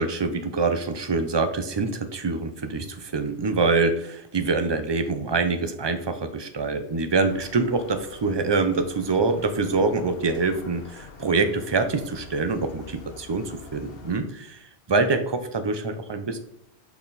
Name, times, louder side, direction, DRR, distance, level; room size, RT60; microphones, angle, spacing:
voice 1, 0.0-14.6 14.9-16.4, right 3 dB, 30° right, 9 dB, 0.5 m, -25 dB
sound 1, 7.3-14.2, left 4 dB, 60° left, 1.0 m, -46 dB
5.6 x 4.4 x 3.9 m, 0.79 s
omnidirectional pair, 1.1 m